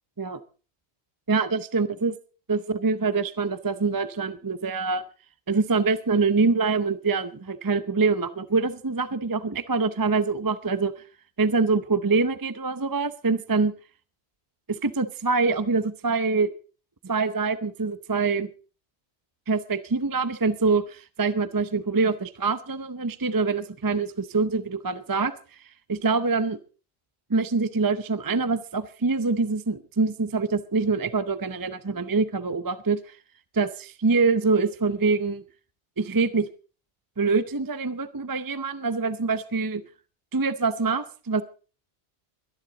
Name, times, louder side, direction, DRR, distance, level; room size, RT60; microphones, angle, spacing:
voice 1, 1.3-2.1 2.5-5.0 5.5-11.0 11.4-13.7 14.7-16.5 17.0-18.5 19.5-25.3 25.9-26.6 27.3-33.2 33.5-35.4 36.0-36.5 37.2-39.8 40.3-41.4, right 4 dB, 25° right, 12 dB, 0.6 m, -25 dB
22.5 x 10.5 x 3.9 m, 0.37 s
omnidirectional pair, 1.1 m